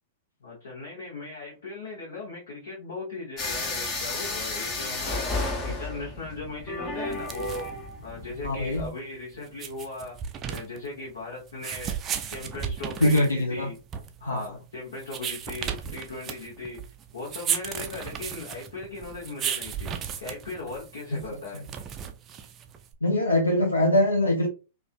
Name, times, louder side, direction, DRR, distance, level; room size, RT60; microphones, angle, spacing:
voice 1, 0.4-7.7 8.0-10.2 10.5-13.8 14.2-16.8 17.1-19.9 20.2-21.6, left 3 dB, 75° left, 0.8 m, -38 dB
sound 1, 3.4-8.9, left 2 dB, 30° left, 0.8 m, -32 dB
sound 2, 7.1-22.9, right 8 dB, 30° right, 0.3 m, -35 dB
voice 2, 8.4-8.9 13.0-13.7 14.3-14.4 23.0-24.5, left 1 dB, 90° left, 0.4 m, -22 dB
2.4 x 2.3 x 2.2 m
figure-of-eight pair, 100°, 0 cm